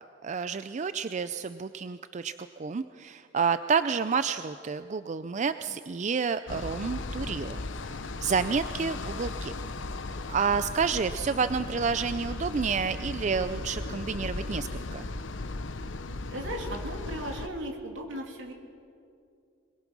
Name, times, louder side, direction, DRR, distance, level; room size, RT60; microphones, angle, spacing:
voice 1, 0.0-2.3 2.6-7.6 8.2-9.5 10.3-15.1, right 5 dB, 40° right, 11 dB, 0.4 m, -29 dB
sound 1, 6.5-17.5, left 2 dB, 75° left, 0.9 m, -36 dB
voice 2, 16.3-18.5, right 1 dB, 75° right, 1 dB, 3.1 m, -36 dB
22.0 x 22.0 x 6.1 m, 2.5 s
head